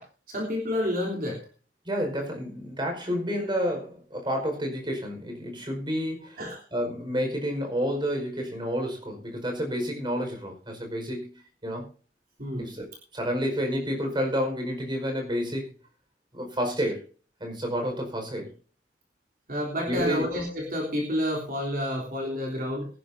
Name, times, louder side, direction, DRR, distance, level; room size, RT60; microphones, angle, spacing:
voice 1, 0.3-1.4 6.4-6.6 12.4-12.7 19.5-22.9, left 1 dB, 55° right, -2 dB, 3.5 m, -29 dB
voice 2, 1.8-11.3 11.6-11.8 12.6-12.9 13.1-15.7 16.3-17.0 17.4-18.5 19.9-20.3, equal, 25° right, 3 dB, 5.1 m, -30 dB
22.0 x 11.5 x 2.8 m, 0.37 s
head